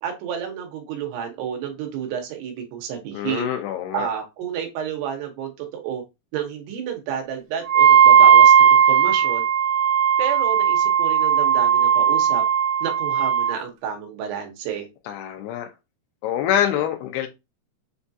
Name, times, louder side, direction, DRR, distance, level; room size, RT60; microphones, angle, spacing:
voice 1, 0.0-3.5 3.9-6.0 6.3-9.4 10.2-12.4 12.8-14.9, right 8 dB, 90° right, 3.2 m, -30 dB
voice 2, 3.1-4.1 15.1-15.7 16.2-17.3, left 10 dB, 85° left, 2.7 m, -25 dB
Wind instrument woodwind instrument, 7.7-13.5, right 8 dB, 70° right, 1.8 m, -16 dB
7.0 x 2.4 x 2.7 m
omnidirectional pair, 4.6 m